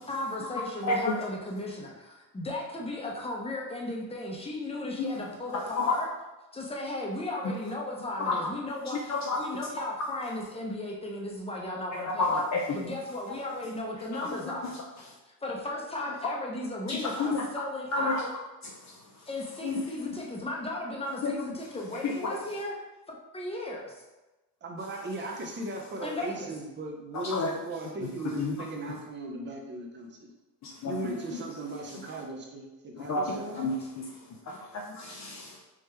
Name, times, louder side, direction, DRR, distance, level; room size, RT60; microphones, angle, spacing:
voice 1, 0.1-6.1 6.5-12.4 12.7-14.7 15.4-18.3 19.3-22.8 23.1-23.9 26.0-26.5 33.8-33.9, left 1 dB, 15° left, -1 dB, 0.7 m, -35 dB
voice 2, 9.1-9.4 12.2-12.6 16.9-17.5 17.9-18.1 19.6-20.1 21.2-21.3 22.0-22.1 27.1-27.5 28.4-28.5 30.6-31.4 33.0-34.0 34.5-35.5, left 3 dB, 45° left, 0 dB, 0.5 m, -30 dB
voice 3, 24.6-30.3 30.9-33.7, right 2 dB, 30° right, 1 dB, 0.7 m, -38 dB
3.6 x 3.0 x 3.3 m, 1.1 s
cardioid pair, 105°, 39 cm